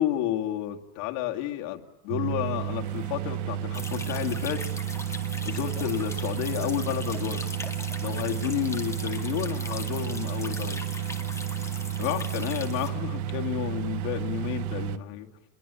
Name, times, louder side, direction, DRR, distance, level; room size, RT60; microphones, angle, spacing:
voice 1, 0.0-4.7 5.4-7.5 8.0-10.9 12.0-15.3, left 12 dB, 80° left, 3 dB, 2.5 m, -31 dB
sound 1, 2.1-15.0, right 10 dB, 45° right, 1.2 m, -32 dB
sound 2, 3.7-12.9, left 3 dB, 5° left, 2.1 m, -40 dB
29.0 x 22.5 x 8.4 m, 0.88 s
cardioid pair, 170°, 39 cm